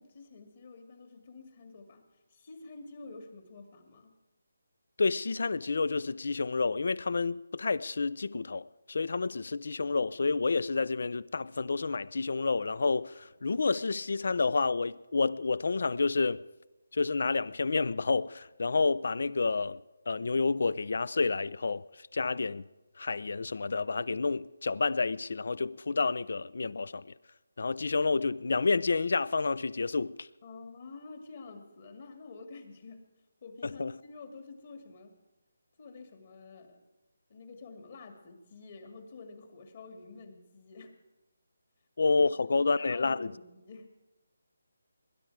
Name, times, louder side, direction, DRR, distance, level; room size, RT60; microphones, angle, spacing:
voice 1, 0.0-2.0 2.3-4.1 30.4-33.0 33.4-35.2 35.8-36.8 37.3-40.9 42.5-43.9, left 3 dB, 45° left, 2.1 m, -49 dB
voice 2, 5.0-16.4 16.9-19.8 20.1-22.6 23.0-27.1 27.6-30.3 33.8-33.9 42.0-43.3, left 4 dB, 65° left, 0.4 m, -29 dB
20.5 x 10.5 x 4.7 m
figure-of-eight pair, 160°, 0 cm